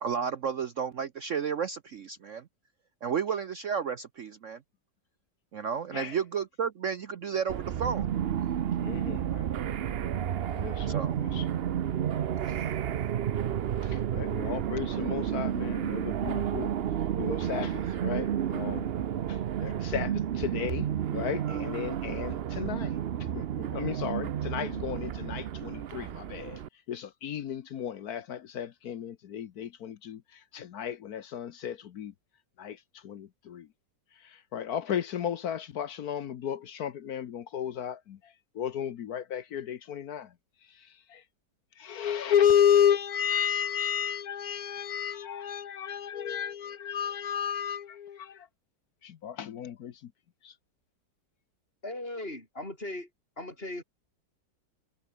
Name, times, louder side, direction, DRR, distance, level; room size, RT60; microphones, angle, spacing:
voice 1, 0.0-2.5 3.0-4.6 5.5-8.1 10.9-11.2 12.4-12.7, right 7 dB, 55° right, 1.0 m, -32 dB
sound 1, 7.5-26.7, right 10 dB, 70° right, 0.5 m, -31 dB
voice 2, 8.8-9.5 10.5-11.4 13.8-16.7 17.2-18.9 19.3-23.0 23.3-26.6 26.9-30.2 30.5-32.1 32.6-32.8 33.0-33.7 34.5-38.2 38.5-40.3 41.1-41.2 41.8-48.5 49.0-49.9 50.4-50.5, left 9 dB, 65° left, 1.3 m, -32 dB
voice 3, 51.8-53.1 53.4-53.8, left 1 dB, 30° left, 6.2 m, -38 dB
omnidirectional pair, 1.9 m